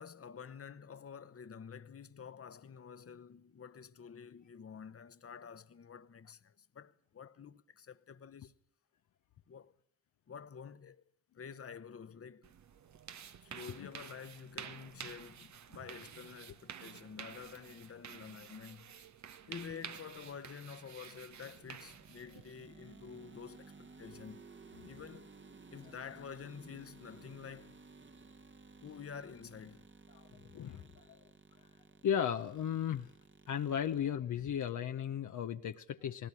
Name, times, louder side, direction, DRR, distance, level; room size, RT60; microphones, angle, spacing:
voice 1, 0.0-8.5 9.5-9.7 10.3-11.0 11.3-12.5 13.4-19.0 19.5-24.5 24.9-25.3 25.7-27.8 28.8-29.9, left 6 dB, 45° left, 1.1 m, -49 dB
sound 1, 12.4-22.6, right 8 dB, 55° right, 1.0 m, -50 dB
sound 2, 21.9-34.0, right 4 dB, 35° right, 1.5 m, -57 dB
voice 2, 30.5-31.2 32.0-33.1 33.5-36.3, left 9 dB, 65° left, 0.9 m, -35 dB
19.0 x 17.5 x 9.9 m
supercardioid pair, 45°, 33 cm